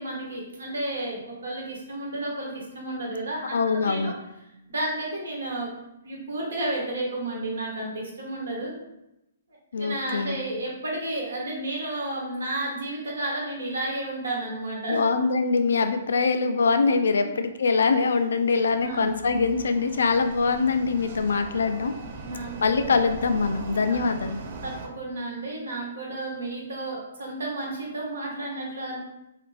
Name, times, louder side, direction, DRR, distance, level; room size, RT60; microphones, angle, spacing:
voice 1, 0.0-4.1 4.7-5.7 6.0-8.7 9.7-15.0 17.1-17.4 18.8-19.3 22.1-23.0 23.9-24.0 24.6-29.0, right 2 dB, 80° right, -3 dB, 1.0 m, -32 dB
voice 2, 3.5-4.2 9.7-10.4 14.9-21.9 22.6-24.4, left 4 dB, 75° left, 8 dB, 0.3 m, -23 dB
sound 1, 18.0-24.9, right 4 dB, 50° right, 0.4 m, -40 dB
2.5 x 2.4 x 3.1 m, 0.89 s
hypercardioid pair, 135°, 0 cm